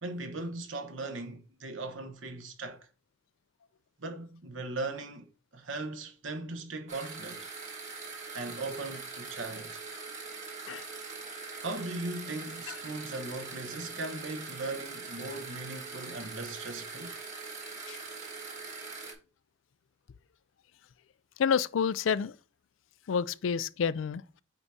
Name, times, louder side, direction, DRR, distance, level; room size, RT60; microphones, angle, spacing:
voice 1, 0.0-2.9 4.0-5.3 5.5-7.5 8.3-9.8 11.6-17.2, right 2 dB, 70° right, 1.1 m, -38 dB
sound 1, 6.9-19.1, right 4 dB, 40° right, 1.6 m, -42 dB
voice 2, 21.4-22.3 23.1-24.4, left 7 dB, 75° left, 0.4 m, -29 dB
8.1 x 4.8 x 2.8 m
head